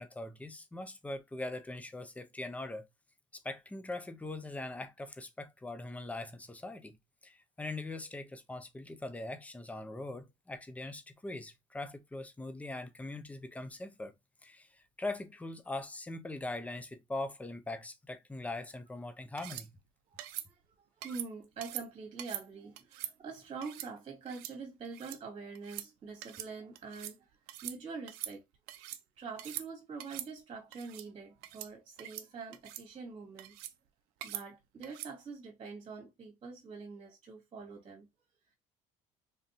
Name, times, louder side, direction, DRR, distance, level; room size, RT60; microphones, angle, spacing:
voice 1, 0.0-2.9 3.3-7.0 7.2-14.1 14.4-19.7, left 2 dB, 10° left, 0.6 m, -41 dB
sound 1, 19.4-19.7 20.2-20.5 21.0-21.3 21.6-21.8 22.2-22.4 22.8-23.1 23.6-23.9 24.3-24.5 24.8-25.2 25.5-25.9 26.2-26.5 26.7-27.2 27.5-27.8 28.1-29.0 29.4-29.7 30.0-30.3 30.7-31.1 31.4-31.7 32.0-32.3 32.5-32.8 33.4-33.7 34.2-34.4 34.8-35.1, right 14 dB, 80° right, 0.5 m, -43 dB
voice 2, 20.1-27.2 27.6-28.4 29.2-33.6 34.2-38.1, right 4 dB, 35° right, 1.4 m, -45 dB
3.5 x 2.5 x 2.7 m
supercardioid pair, 95°, 16 cm